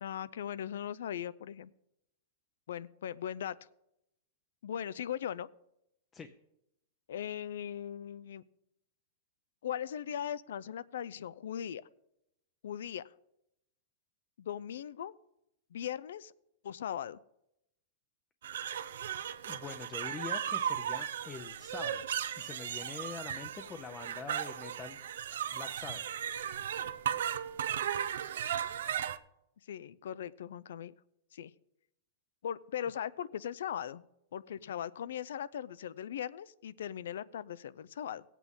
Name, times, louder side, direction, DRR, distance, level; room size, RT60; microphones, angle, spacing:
voice 1, 0.0-1.7 2.7-3.6 4.6-5.5 7.1-8.4 9.6-11.8 12.6-13.0 14.4-15.1 15.7-16.3 16.6-17.2 29.7-30.9 31.3-31.5 32.4-34.0 34.3-38.2, left 9 dB, 80° left, 20 dB, 0.4 m, -39 dB
sound 1, 18.4-29.2, right 9 dB, 80° right, 0.6 m, -36 dB
voice 2, 19.5-22.0 22.3-25.0 25.5-26.1, left 5 dB, 15° left, 8 dB, 0.6 m, -44 dB
17.0 x 8.3 x 3.6 m, 0.82 s
supercardioid pair, 160°, 0 cm